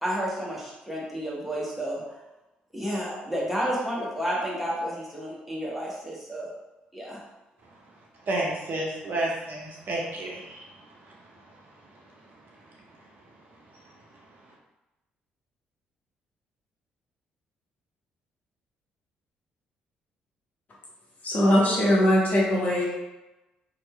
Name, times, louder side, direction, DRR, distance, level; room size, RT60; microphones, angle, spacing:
voice 1, 0.0-2.2 2.7-6.5 6.9-7.2, equal, ahead, -5 dB, 1.0 m, -31 dB
voice 2, 8.2-13.1 13.7-13.9, right 1 dB, 45° right, -3 dB, 0.6 m, -33 dB
voice 3, 21.2-22.8, equal, 35° left, -5 dB, 1.0 m, -21 dB
3.0 x 2.2 x 3.1 m, 1.0 s
figure-of-eight pair, 45°, 5 cm